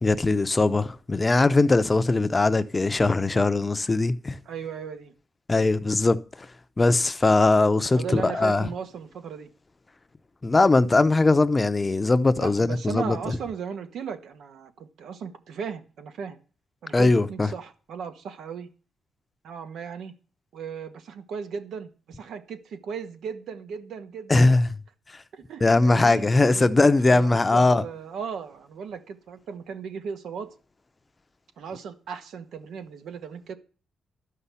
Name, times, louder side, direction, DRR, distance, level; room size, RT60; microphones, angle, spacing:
voice 1, 0.0-4.4 5.5-6.2 6.8-8.7 10.4-13.4 16.9-17.5 24.3-24.7 25.6-27.8, left 3 dB, 25° left, 0.8 m, -20 dB
voice 2, 4.4-5.1 7.9-9.5 12.4-16.4 16.8-18.7 19.4-20.1 20.5-24.5 25.3-30.5 31.6-33.6, right 6 dB, 80° right, 1.7 m, -36 dB
12.5 x 5.7 x 8.4 m
cardioid pair, 105°, 0 cm